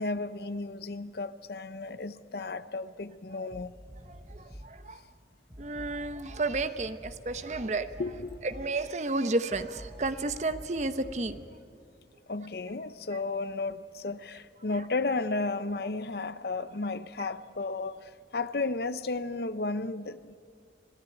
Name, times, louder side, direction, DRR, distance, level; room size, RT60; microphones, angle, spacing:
voice 1, 0.0-3.7 8.0-8.4 12.3-20.4, left 3 dB, 65° left, 0.7 m, -33 dB
sound 1, 3.5-4.8 5.5-11.5, equal, 20° right, 5.3 m, -48 dB
voice 2, 4.3-5.0 5.6-7.9 8.5-11.4, right 2 dB, 40° right, 0.9 m, -32 dB
26.0 x 15.5 x 9.2 m
head